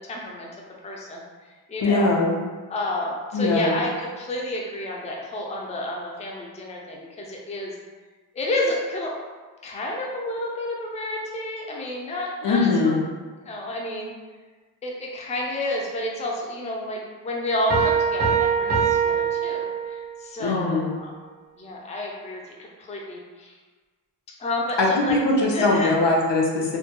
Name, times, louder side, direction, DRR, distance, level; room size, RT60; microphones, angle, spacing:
voice 1, 0.1-0.5 0.8-1.2 1.7-2.1 2.7-7.7 8.3-9.1 9.6-12.9 13.4-14.1 14.8-21.1 21.6-23.6 24.4-25.2 25.5-25.9, left 1 dB, 20° left, -2 dB, 0.3 m, -30 dB
voice 2, 1.8-2.3 3.3-3.8 12.4-13.0 20.4-20.9 24.8-26.8, left 2 dB, 85° left, -1 dB, 0.6 m, -21 dB
Piano, 17.7-20.2, right 6 dB, 45° right, 0.6 m, -23 dB
2.2 x 2.2 x 2.8 m, 1.4 s
wide cardioid pair, 110°, 42 cm